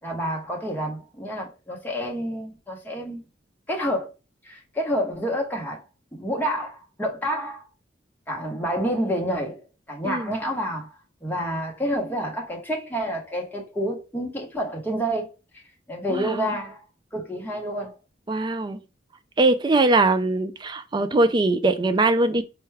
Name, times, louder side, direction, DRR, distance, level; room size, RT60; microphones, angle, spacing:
voice 1, 0.0-3.2 3.7-4.1 4.4-5.8 6.1-6.7 7.0-7.6 8.3-10.9 11.2-15.3 15.9-16.8 17.1-17.9, equal, 10° left, 0.9 m, -28 dB
voice 2, 16.1-16.6 18.3-18.8 19.4-22.4, right 2 dB, 25° right, 0.3 m, -21 dB
4.5 x 2.2 x 3.2 m
head